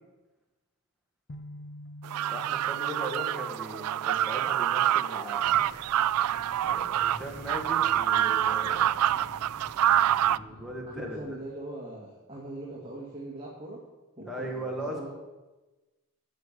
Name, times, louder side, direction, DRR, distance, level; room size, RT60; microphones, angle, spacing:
sound 1, 1.3-5.3, left 1 dB, 50° left, 0.6 m, -48 dB
sound 2, 2.0-10.4, right 11 dB, 90° right, 0.3 m, -26 dB
voice 1, 2.3-5.6 6.6-8.9 10.2-11.2 14.3-15.1, right 1 dB, ahead, -2 dB, 2.1 m, -38 dB
sound 3, 5.3-11.2, equal, 30° left, 2.8 m, -49 dB
voice 2, 10.9-13.8 14.2-15.1, right 1 dB, 25° right, -5 dB, 2.0 m, -41 dB
11.0 x 6.7 x 7.4 m, 1.1 s
head